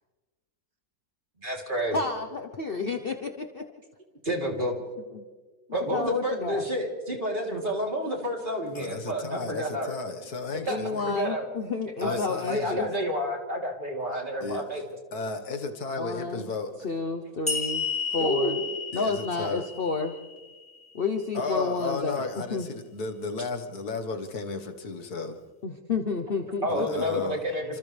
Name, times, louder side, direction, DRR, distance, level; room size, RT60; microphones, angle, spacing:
voice 1, 1.4-2.0 4.2-4.7 5.7-10.0 10.7-10.8 11.1-11.5 12.0-12.2 12.5-14.8 17.2-17.3 18.2-18.6 26.6-27.8, equal, 35° right, 3.6 m, -29 dB
voice 2, 1.9-3.6 5.1-5.2 5.9-6.7 9.2-9.5 10.6-12.9 16.0-16.5 16.8-18.6 18.9-20.2 20.9-22.7 25.6-26.7, left 4 dB, 40° left, 1.1 m, -30 dB
voice 3, 8.7-11.2 12.0-12.8 14.4-14.8 15.1-16.7 18.9-19.6 21.3-25.4 26.7-27.4 27.7-27.8, left 3 dB, 85° left, 2.1 m, -34 dB
sound 1, 17.5-20.8, left 5 dB, 5° left, 1.7 m, -32 dB
29.5 x 26.5 x 3.4 m
omnidirectional pair, 1.6 m